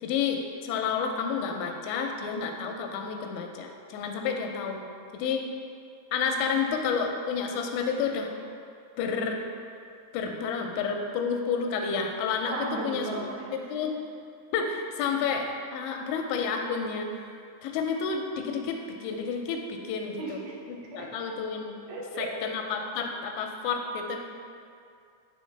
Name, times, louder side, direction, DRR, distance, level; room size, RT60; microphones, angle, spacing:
voice 1, 0.0-4.9 5.1-5.4 6.1-8.3 9.0-9.4 10.1-13.1 13.5-13.9 14.5-17.1 17.6-20.4 20.7-21.7 22.2-24.2, left 5 dB, 85° left, 3 dB, 2.8 m, -30 dB
voice 2, 12.4-13.7 20.2-21.1 21.9-22.3, right 2 dB, 80° right, -3 dB, 2.9 m, -36 dB
9.3 x 3.4 x 3.2 m, 2.4 s
omnidirectional pair, 5.0 m